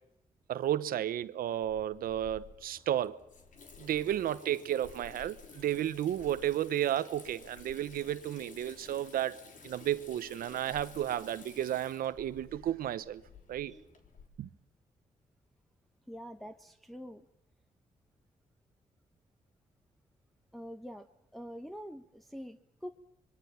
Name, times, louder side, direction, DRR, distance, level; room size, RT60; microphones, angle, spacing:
voice 1, 0.5-3.2 3.8-9.4 9.6-13.2 13.5-13.7 14.4-14.5, right 11 dB, 90° right, 1.0 m, -33 dB
Water tap faucet / Sink (filling or washing), 1.6-14.3, left 5 dB, 65° left, 3.4 m, -53 dB
voice 2, 16.1-17.2 20.5-22.9, equal, ahead, 1.1 m, -45 dB
25.5 x 23.5 x 5.7 m
cardioid pair, 70°, 15 cm